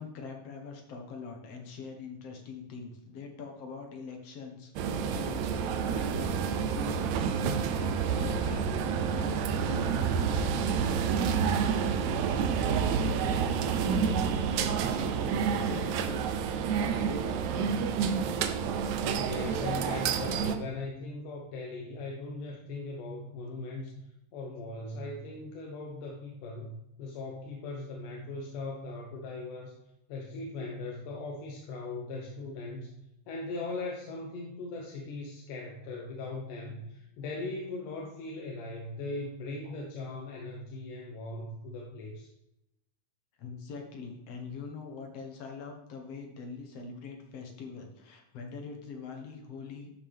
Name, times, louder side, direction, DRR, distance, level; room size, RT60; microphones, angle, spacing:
voice 1, 0.0-7.0 7.3-18.3 39.6-39.8 43.4-49.9, left 4 dB, 55° left, 3 dB, 2.2 m, -43 dB
sound 1, 4.8-20.6, right 6 dB, 80° right, 1.7 m, -29 dB
voice 2, 19.1-23.9 24.3-29.7 30.1-32.9 33.3-42.3, left 3 dB, 75° left, -1 dB, 2.6 m, -39 dB
12.5 x 6.5 x 3.5 m, 0.89 s
omnidirectional pair, 3.8 m